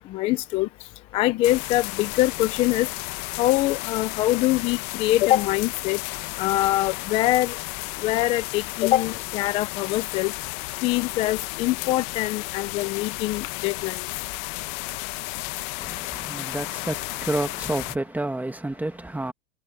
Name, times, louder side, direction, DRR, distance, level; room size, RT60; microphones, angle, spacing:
voice 1, 0.1-0.7 1.1-2.9 3.4-6.0 6.4-7.6 8.0-10.3 10.8-14.1, left 15 dB, 15° left, 0.3 m, -23 dB
sound 1, 1.4-18.0, left 23 dB, 40° left, 1.2 m, -33 dB
voice 2, 15.8-19.3, right 2 dB, 5° right, 1.8 m, -30 dB
supercardioid pair, 140°, 40 cm